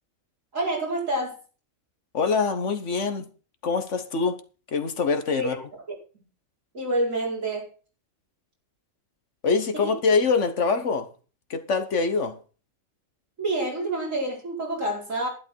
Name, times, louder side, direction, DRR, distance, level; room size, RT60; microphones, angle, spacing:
voice 1, 0.5-1.4 5.3-5.5 6.7-7.7 9.8-9.9 13.4-15.3, right 1 dB, 80° right, 5.1 m, -27 dB
voice 2, 2.1-3.3 3.6-4.4 4.7-5.6 9.4-11.1 11.5-12.4, left 4 dB, 70° left, 1.5 m, -24 dB
11.5 x 11.0 x 4.5 m
omnidirectional pair, 1.3 m